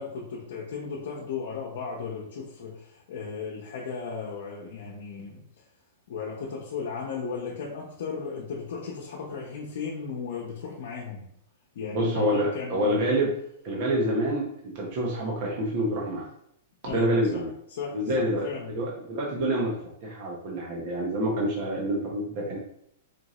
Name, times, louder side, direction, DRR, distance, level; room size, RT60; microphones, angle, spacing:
voice 1, 0.0-5.6 6.1-11.3 11.7-13.0 16.8-18.8, left 5 dB, 65° left, -3 dB, 0.8 m, -36 dB
voice 2, 11.9-13.3 13.6-16.3 16.8-17.5 17.9-22.6, right 1 dB, 45° right, -2 dB, 0.9 m, -27 dB
4.4 x 2.6 x 3.0 m, 0.74 s
hypercardioid pair, 150°, 0 cm